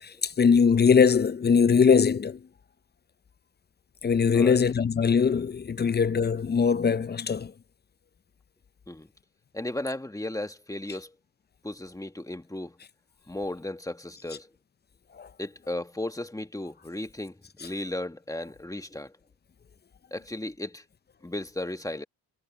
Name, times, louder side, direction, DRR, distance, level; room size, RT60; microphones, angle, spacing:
voice 1, 0.0-2.4 4.0-7.5 15.2-15.3, left 6 dB, 25° left, 0.5 m, -21 dB
voice 2, 4.3-4.6 8.9-9.1 9.5-11.1 11.6-12.8 13.3-14.5 15.4-19.1 20.1-20.8 21.2-22.0, left 1 dB, 10° left, 1.5 m, -35 dB
cardioid pair, 90°, 39 cm